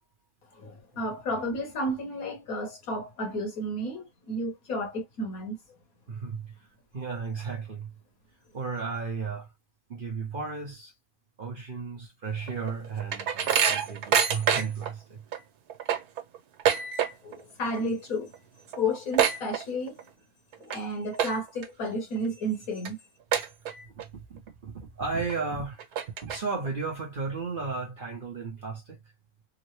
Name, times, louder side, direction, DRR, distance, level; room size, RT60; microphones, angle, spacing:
voice 1, 0.5-5.6 17.2-18.3 18.7-20.0 20.6-23.0, left 1 dB, 65° left, 1.6 m, -32 dB
voice 2, 6.1-6.5 6.9-7.9 8.5-9.5 9.9-10.9 11.4-15.2 23.9-25.9 26.2-29.0, right 4 dB, 40° right, 0.9 m, -34 dB
sound 1, 12.5-14.9 15.3-15.4 15.7-17.4 17.7-18.0 18.3-18.4 18.7-20.1 20.5-20.8 21.1-21.7 22.2-22.3 22.8-22.9 23.3-24.0 24.5-24.6 25.3-25.4 25.8-26.7, right 8 dB, 85° right, 1.3 m, -26 dB
3.8 x 2.0 x 3.0 m
omnidirectional pair, 1.6 m